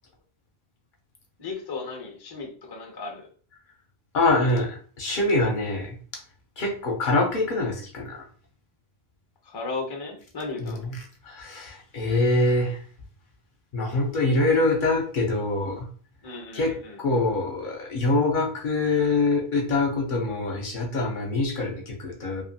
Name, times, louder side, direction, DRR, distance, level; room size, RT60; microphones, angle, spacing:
voice 1, 1.4-3.3 9.4-10.9 16.2-17.0, left 3 dB, 30° left, 1 dB, 0.5 m, -35 dB
voice 2, 4.1-6.0 6.6-8.3 10.6-12.8 13.7-15.9 16.5-22.4, left 2 dB, 55° left, 1 dB, 0.8 m, -25 dB
2.5 x 2.5 x 2.6 m, 0.43 s
omnidirectional pair, 1.0 m